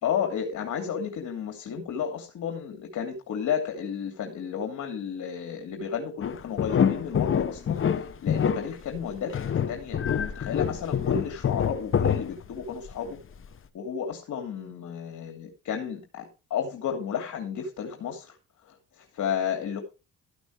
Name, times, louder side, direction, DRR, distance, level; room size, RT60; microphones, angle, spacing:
voice 1, 0.0-13.2 13.7-18.4 18.7-19.8, left 7 dB, 70° left, 4 dB, 2.7 m, -32 dB
sound 1, 6.2-12.9 13.4-13.5, left 8 dB, 45° left, 1.0 m, -26 dB
13.5 x 6.2 x 4.8 m, 0.30 s
cardioid pair, 90°, 30 cm